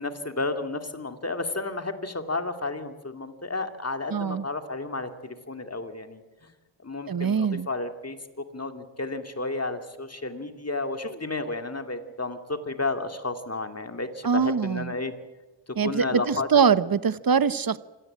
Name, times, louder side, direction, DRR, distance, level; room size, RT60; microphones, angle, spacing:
voice 1, 0.0-6.5 6.8-15.1 15.8-16.6, left 3 dB, 30° left, 7 dB, 2.5 m, -32 dB
voice 2, 4.1-4.4 7.1-7.7 14.2-14.9 15.8-17.8, right 6 dB, 45° right, 15 dB, 1.0 m, -23 dB
26.0 x 17.5 x 8.8 m, 1.2 s
wide cardioid pair, 70°, 47 cm